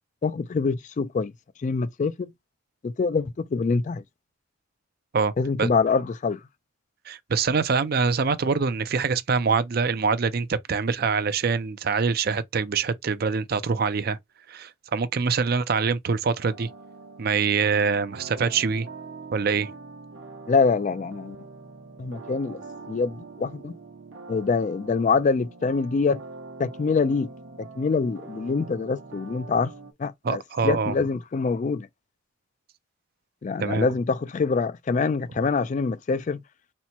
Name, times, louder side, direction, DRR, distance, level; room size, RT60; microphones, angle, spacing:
voice 1, 0.2-1.3 1.6-2.3 2.8-4.0 5.4-6.4 20.5-21.4 22.0-22.6 22.9-23.7 24.3-26.2 26.6-27.3 27.6-29.7 30.0-31.9 33.4-36.4, left 4 dB, 35° left, 0.3 m, -25 dB
voice 2, 7.1-14.2 14.5-16.7 17.2-18.9 19.3-19.7 30.2-30.9 33.6-33.9, right 5 dB, 50° right, 0.5 m, -24 dB
sound 1, 16.4-29.9, right 3 dB, 75° right, 0.9 m, -43 dB
4.2 x 2.1 x 4.3 m
head